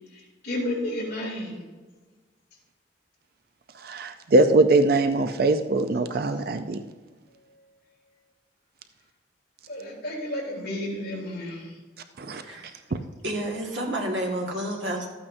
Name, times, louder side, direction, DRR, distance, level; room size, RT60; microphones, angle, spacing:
voice 1, 0.1-1.6 9.7-11.7, left 1 dB, 55° left, 2.8 m, -32 dB
voice 2, 3.8-6.8 12.2-12.4, right 2 dB, 50° right, 0.5 m, -21 dB
voice 3, 12.3-12.7 13.2-15.1, right 1 dB, 70° right, 1.7 m, -30 dB
13.0 x 8.8 x 2.6 m
head